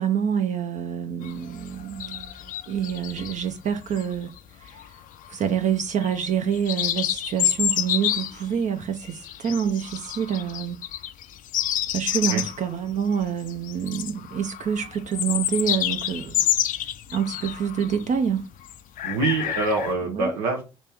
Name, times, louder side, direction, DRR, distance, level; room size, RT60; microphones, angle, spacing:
voice 1, 0.0-4.3 4.6-4.9 5.3-10.8 11.9-16.5 17.1-18.5 20.0-20.3, right 8 dB, 45° right, 0.5 m, -27 dB
sound 1, 1.2-3.4 3.9-4.4 4.7-5.3 6.0-6.3 6.5-8.5 9.0-18.3 18.5-19.9, left 11 dB, 55° left, 0.4 m, -28 dB
voice 2, 19.0-20.6, right 3 dB, 90° right, 0.7 m, -25 dB
3.1 x 2.9 x 3.4 m
hypercardioid pair, 60°, 17 cm